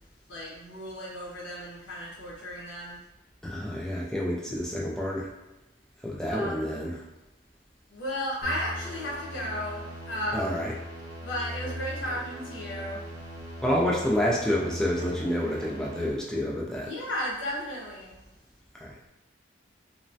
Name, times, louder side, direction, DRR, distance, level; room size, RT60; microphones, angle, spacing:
voice 1, 0.3-3.0 6.3-6.6 7.9-9.8 10.1-10.5 11.2-13.0 16.8-18.1, equal, 85° left, -5 dB, 1.0 m, -34 dB
voice 2, 3.4-5.3 6.0-7.0 10.3-10.7 13.6-16.9 18.7-19.0, equal, 5° left, -4 dB, 0.3 m, -28 dB
sound 1, 8.4-16.1, equal, 55° right, 0.7 m, -39 dB
3.1 x 2.1 x 2.6 m, 0.98 s
head